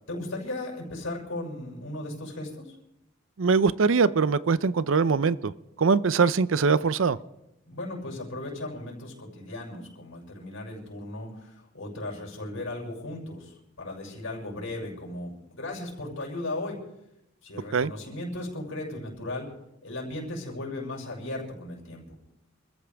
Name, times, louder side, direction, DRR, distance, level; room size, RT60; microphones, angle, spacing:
voice 1, 0.1-2.7 7.6-16.8 17.4-19.5 19.8-22.2, left 2 dB, 75° left, -1 dB, 6.4 m, -36 dB
voice 2, 3.4-5.5 5.8-7.2 17.7-17.9, right 5 dB, 75° right, 17 dB, 0.5 m, -22 dB
27.0 x 14.5 x 3.5 m, 0.86 s
head